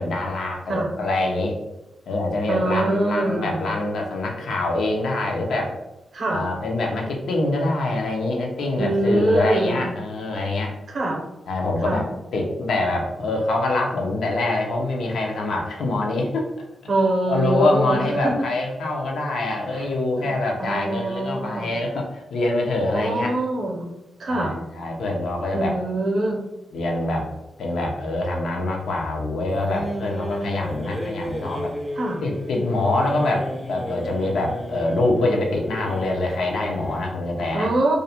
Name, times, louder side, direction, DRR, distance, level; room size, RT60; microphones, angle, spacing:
voice 1, 0.0-1.6 2.1-5.7 6.3-10.8 11.5-16.5 17.3-23.4 24.3-25.7 26.7-27.3 27.6-31.8 32.2-37.7, left 2 dB, 85° left, 0 dB, 0.5 m, -24 dB
voice 2, 2.5-3.7 6.1-6.5 8.8-9.8 10.9-11.2 11.8-12.0 16.9-18.3 19.7-19.9 20.2-20.3 20.6-21.7 22.9-23.9 24.2-24.5 25.5-26.4 32.0-32.2 37.5-38.0, right 2 dB, 55° right, -1 dB, 0.5 m, -24 dB
sound 1, 29.5-37.2, equal, 5° right, 0.3 m, -33 dB
2.4 x 2.0 x 2.7 m, 0.96 s
wide cardioid pair, 135°, 0 cm